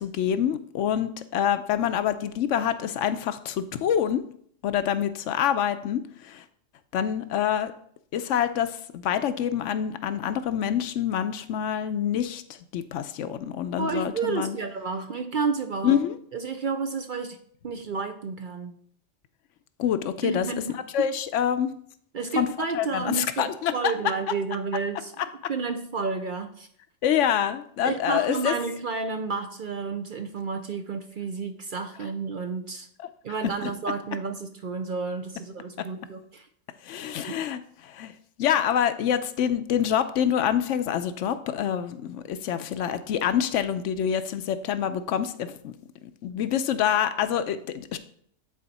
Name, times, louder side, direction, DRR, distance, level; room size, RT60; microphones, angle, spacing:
voice 1, 0.0-4.2 4.6-6.4 6.9-7.7 8.1-12.4 12.7-14.6 15.8-16.1 19.8-20.5 20.9-21.7 22.4-22.5 22.7-23.9 27.0-28.5 33.6-33.7 36.8-38.1 38.4-45.7 46.0-48.0, left 9 dB, 75° left, 11 dB, 0.9 m, -26 dB
voice 2, 13.8-16.0 16.3-17.4 17.6-18.8 20.2-21.1 22.1-25.1 25.5-26.7 27.8-32.9 33.2-36.5, right 4 dB, 55° right, 7 dB, 0.6 m, -31 dB
9.8 x 4.3 x 4.1 m, 0.63 s
omnidirectional pair, 1.3 m